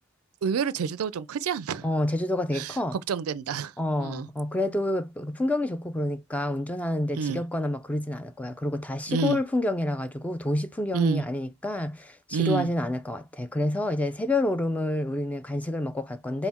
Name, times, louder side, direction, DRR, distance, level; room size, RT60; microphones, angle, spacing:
voice 1, 0.4-1.9 2.5-3.7 4.0-4.3 7.2-7.4 9.1-9.4 10.9-11.2 12.3-12.7, right 6 dB, 70° right, 0.4 m, -28 dB
voice 2, 1.8-3.0 3.8-16.5, left 1 dB, 5° left, 0.3 m, -28 dB
5.6 x 2.1 x 4.3 m
head